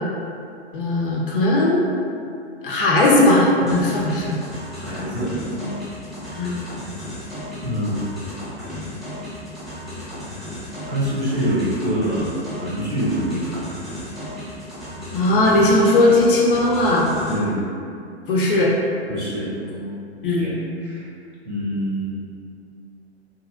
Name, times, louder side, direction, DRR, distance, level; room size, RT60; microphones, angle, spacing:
voice 1, 0.7-1.8 2.6-4.4 6.4-6.5 15.1-17.1 18.3-18.7 20.2-20.5, left 2 dB, 50° left, -3 dB, 0.5 m, -17 dB
sound 1, 3.7-17.4, left 1 dB, ahead, 0.4 m, -35 dB
voice 2, 4.7-5.8 7.6-8.0 10.8-12.3 12.6-13.6 17.3-17.7 19.1-21.1 21.4-22.2, equal, 90° right, -8 dB, 1.1 m, -26 dB
2.9 x 2.4 x 2.3 m, 2.5 s
figure-of-eight pair, 105°, 34 cm